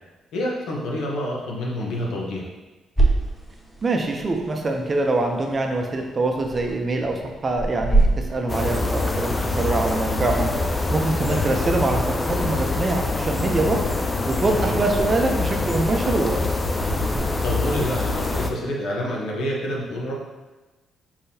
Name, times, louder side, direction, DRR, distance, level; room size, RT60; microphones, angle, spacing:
voice 1, 0.3-2.4 11.3-11.5 14.4-14.8 17.4-20.1, left 1 dB, 80° left, -2 dB, 0.9 m, -27 dB
sound 1, 3.0-17.2, right 2 dB, ahead, 0.8 m, -29 dB
voice 2, 3.8-10.5 10.9-13.8 14.3-16.4, right 2 dB, 35° right, 3 dB, 0.6 m, -24 dB
sound 2, 8.5-18.5, left 2 dB, 25° left, 0.4 m, -25 dB
4.5 x 3.6 x 2.8 m, 1.2 s
cardioid pair, 90°, 0 cm